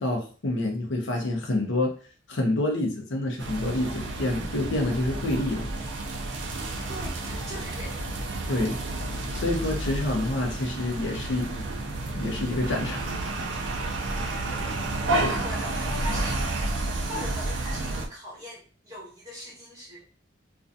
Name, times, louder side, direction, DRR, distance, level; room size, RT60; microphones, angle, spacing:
voice 1, 0.0-1.9 2.3-5.7 8.5-8.8 9.3-11.6 12.1-13.1 13.4-13.5 15.2-15.3, left 1 dB, 70° left, 1 dB, 0.6 m, -27 dB
sound 1, 3.4-18.1, right 2 dB, 65° right, 0.4 m, -31 dB
voice 2, 6.3-8.1 14.0-16.5 17.0-20.0, left 1 dB, 15° right, -5 dB, 1.1 m, -41 dB
2.5 x 2.2 x 2.5 m, 0.39 s
head